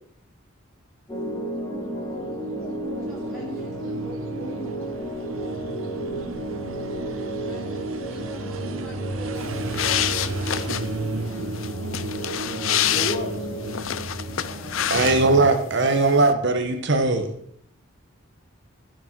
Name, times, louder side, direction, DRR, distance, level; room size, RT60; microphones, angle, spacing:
sound 1, 1.1-15.4, right 1 dB, 20° left, 2.4 m, -33 dB
sound 2, 1.2-15.5, right 2 dB, 80° right, 1.1 m, -35 dB
voice 1, 1.4-3.5 4.0-4.7 5.0-5.1 12.9-13.3 14.3-14.8, left 1 dB, 45° left, 0 dB, 3.1 m, -36 dB
voice 2, 3.1-4.0 6.2-6.3 7.4-9.6, equal, ahead, -5 dB, 6.3 m, -45 dB
sound 3, 9.4-15.6 15.8-16.3, left 11 dB, 75° left, 0.6 m, -28 dB
voice 3, 14.9-17.3, right 3 dB, 60° right, 6 dB, 1.3 m, -19 dB
14.5 x 6.7 x 6.2 m, 0.69 s
head